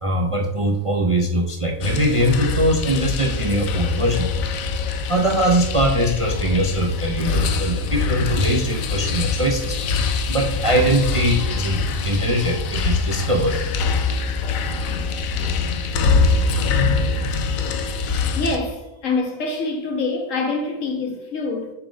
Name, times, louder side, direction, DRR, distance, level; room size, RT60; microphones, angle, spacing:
voice 1, 0.0-4.3 5.1-9.8 10.3-11.8 12.0-13.6, right 1 dB, 50° right, 0.4 m, -21 dB
sound 1, 1.8-18.6, left 4 dB, 90° left, 1.1 m, -23 dB
voice 2, 18.3-21.7, left 3 dB, 75° left, 1.6 m, -25 dB
7.0 x 3.5 x 5.1 m
omnidirectional pair, 1.4 m